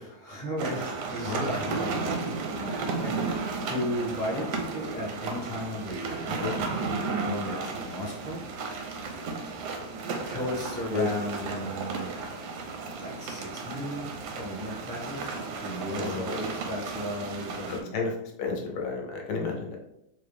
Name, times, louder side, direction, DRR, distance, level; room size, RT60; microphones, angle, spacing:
voice 1, 0.0-2.4 3.0-3.2 3.6-8.4 10.0-12.1 13.0-18.0, equal, 35° left, -5 dB, 0.8 m, -35 dB
sound 1, 0.6-17.8, right 4 dB, 80° right, 1.2 m, -34 dB
voice 2, 15.9-16.3 17.7-18.1 18.4-19.8, left 4 dB, 80° left, 0 dB, 1.3 m, -31 dB
4.2 x 2.2 x 3.4 m, 0.84 s
omnidirectional pair, 1.8 m